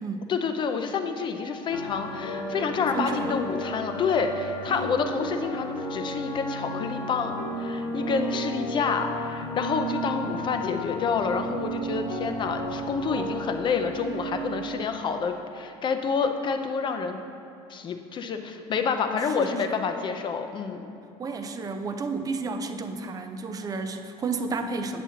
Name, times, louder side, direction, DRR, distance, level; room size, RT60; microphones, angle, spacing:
voice 1, 0.3-17.2 17.7-20.9, left 5 dB, 35° left, 6 dB, 0.5 m, -28 dB
sound 1, 1.7-14.8, right 1 dB, 90° left, 0.8 m, -33 dB
voice 2, 2.9-3.4 4.7-4.8 13.1-13.3 19.4-19.8 21.2-25.0, right 4 dB, 25° right, 7 dB, 0.5 m, -32 dB
8.4 x 7.1 x 2.8 m, 2.5 s
supercardioid pair, 110°, 13 cm